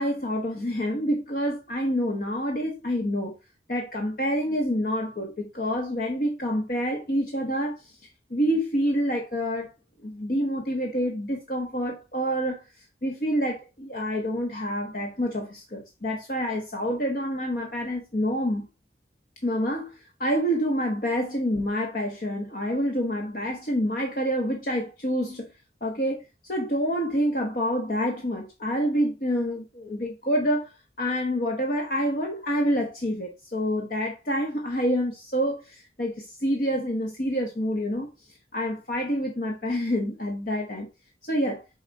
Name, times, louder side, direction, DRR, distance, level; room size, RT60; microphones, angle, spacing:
voice 1, 0.0-3.3 3.7-8.0 8.3-9.7 10.0-12.6 13.0-18.7 19.4-25.5 25.8-30.7 31.0-38.1 38.5-40.9 41.2-41.6, equal, 50° left, 1.2 m, -27 dB
7.1 x 4.1 x 4.2 m
head